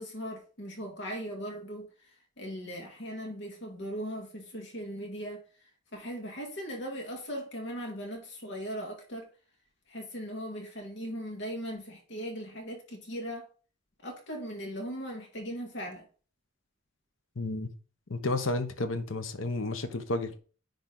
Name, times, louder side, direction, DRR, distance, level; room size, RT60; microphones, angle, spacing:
voice 1, 0.0-5.4 5.9-9.3 9.9-13.5 14.0-16.1, equal, 65° left, 1.8 m, -39 dB
voice 2, 17.4-17.7 18.1-20.4, left 2 dB, 80° left, 0.9 m, -31 dB
10.0 x 3.4 x 3.9 m
head